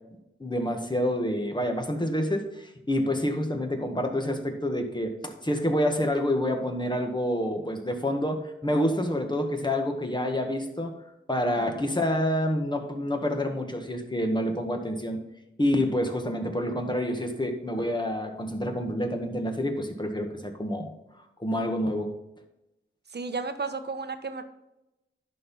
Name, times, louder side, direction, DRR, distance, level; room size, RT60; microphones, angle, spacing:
voice 1, 0.4-10.9 11.3-15.2 15.6-20.9 21.4-22.1, left 1 dB, 20° left, 4 dB, 1.8 m, -28 dB
voice 2, 23.1-24.4, right 4 dB, 50° right, 9 dB, 1.1 m, -33 dB
11.0 x 4.7 x 5.6 m, 0.91 s
cardioid pair, 65°, 21 cm